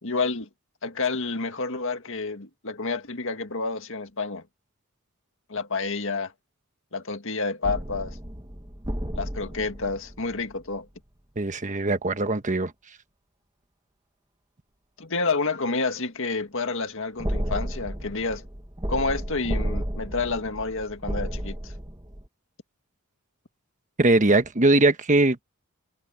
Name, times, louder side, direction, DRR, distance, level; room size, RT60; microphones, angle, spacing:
voice 1, 0.0-0.5 0.8-4.4 5.5-6.3 6.9-8.2 9.1-10.9 15.0-18.4 18.9-21.7, left 3 dB, 65° left, 2.0 m, -29 dB
sound 1, 7.6-10.8 17.2-22.3, equal, 20° right, 1.8 m, -32 dB
voice 2, 11.4-12.7 24.0-25.4, right 2 dB, 35° right, 1.3 m, -21 dB
head